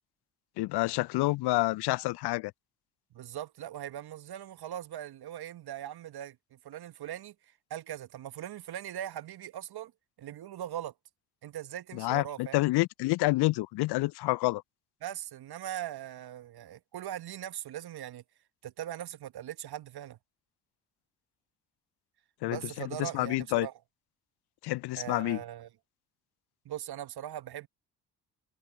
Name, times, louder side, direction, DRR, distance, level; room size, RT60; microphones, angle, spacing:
voice 1, 0.6-2.5 11.9-14.6 22.4-22.6 23.0-23.7 24.6-25.4, left 20 dB, 55° left, 0.8 m, -28 dB
voice 2, 3.1-9.9 10.2-10.9 11.4-12.6 15.0-18.2 18.6-20.2 22.5-23.7 24.9-25.7 26.7-27.7, right 11 dB, 50° right, 1.8 m, -40 dB
figure-of-eight pair, 45°, 47 cm